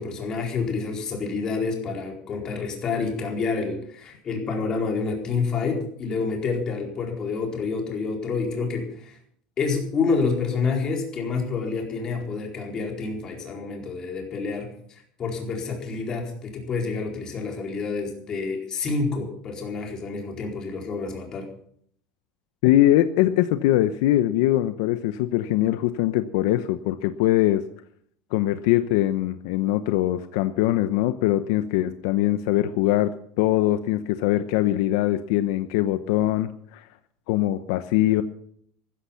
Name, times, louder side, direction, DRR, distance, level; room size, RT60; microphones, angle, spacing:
voice 1, 0.0-9.2 9.6-21.5, left 4 dB, 30° left, 1 dB, 4.4 m, -28 dB
voice 2, 22.6-27.6 28.3-36.8 37.3-38.2, left 14 dB, 75° left, 11 dB, 0.9 m, -22 dB
14.5 x 14.0 x 5.8 m, 0.63 s
cardioid pair, 155°, 2 cm